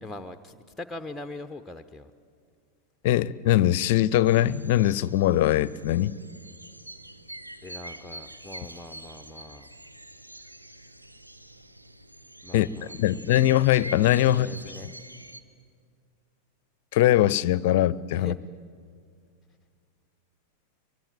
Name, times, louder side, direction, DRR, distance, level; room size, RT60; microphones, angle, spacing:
voice 1, 0.0-2.1 7.6-9.7 12.4-13.4 14.2-14.9 18.1-18.4, left 2 dB, 5° left, 8 dB, 0.9 m, -42 dB
voice 2, 3.0-6.2 12.5-12.7 13.0-14.5 16.9-18.3, left 13 dB, 50° left, 21 dB, 0.6 m, -21 dB
sound 1, 4.2-15.4, right 1 dB, 85° right, 1.1 m, -45 dB
24.5 x 23.5 x 9.1 m, 2.2 s
figure-of-eight pair, 90°, 0 cm